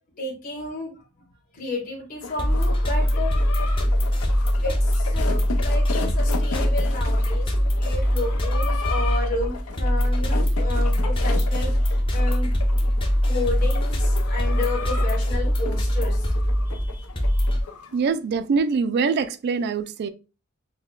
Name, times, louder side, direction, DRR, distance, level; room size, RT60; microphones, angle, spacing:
voice 1, 0.2-1.0 1.5-3.8 4.6-7.5 7.8-12.5 13.2-16.3 16.6-17.5, left 2 dB, 40° left, 1.2 m, -32 dB
sound 1, 2.2-18.0, left 5 dB, 90° left, 0.5 m, -36 dB
sound 2, 2.4-17.6, equal, 25° left, 0.6 m, -22 dB
voice 2, 17.9-20.1, right 5 dB, 50° right, 0.3 m, -23 dB
5.5 x 2.1 x 2.3 m
head